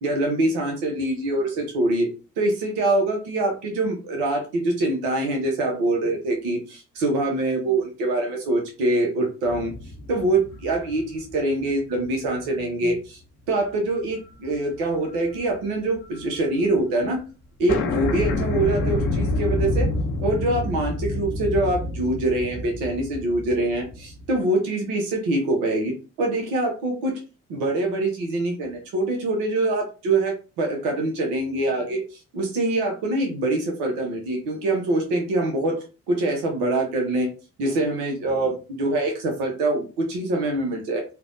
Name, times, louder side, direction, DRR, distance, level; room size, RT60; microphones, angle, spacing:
voice 1, 0.0-2.1 2.4-9.7 10.1-13.2 13.5-17.2 17.6-19.9 20.2-25.9 26.2-27.1 27.5-35.8 36.1-37.3 37.6-41.0, right 2 dB, 90° right, 2 dB, 0.8 m, -24 dB
sound 1, 9.5-12.1 12.5-12.6 14.1-14.5 14.8-16.2 16.5-16.6 16.8-16.9 17.2-17.3 17.7-24.4, left 2 dB, 85° left, 0.6 m, -28 dB
3.2 x 2.2 x 2.5 m, 0.32 s
hypercardioid pair, 45°, 34 cm